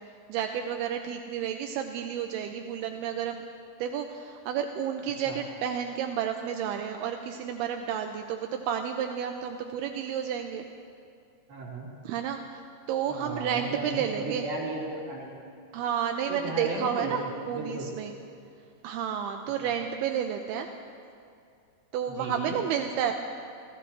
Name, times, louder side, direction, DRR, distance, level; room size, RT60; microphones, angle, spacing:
voice 1, 0.3-3.5 3.8-10.7 12.1-12.6 12.9-14.5 15.7-18.1 18.8-20.7 21.9-23.1, right 8 dB, 85° right, 5 dB, 2.3 m, -31 dB
voice 2, 11.5-11.9 13.1-15.3 16.3-17.2 17.4-17.9 19.6-19.7 22.1-22.5, right 2 dB, 55° right, -7 dB, 5.7 m, -35 dB
29.5 x 15.5 x 3.1 m, 2.4 s
omnidirectional pair, 5.1 m